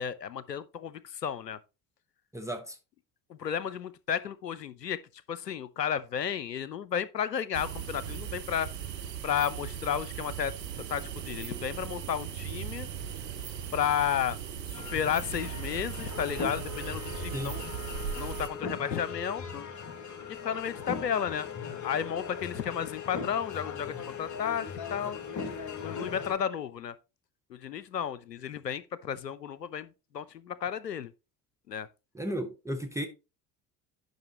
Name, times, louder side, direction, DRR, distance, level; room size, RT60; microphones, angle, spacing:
voice 1, 0.0-1.6 3.3-8.7 9.2-12.9 13.7-14.4 14.7-17.6 18.1-19.7 20.3-21.5 21.8-25.2 25.8-27.0 27.5-31.1 31.7-31.9, left 8 dB, 90° left, 0.5 m, -33 dB
voice 2, 2.3-2.8 17.3-17.5 32.1-33.1, equal, 5° right, 1.0 m, -34 dB
sound 1, 7.5-18.5, right 8 dB, 85° right, 0.7 m, -38 dB
sound 2, 14.7-26.4, left 5 dB, 35° left, 1.6 m, -39 dB
10.5 x 5.4 x 2.9 m
figure-of-eight pair, 60°, 48 cm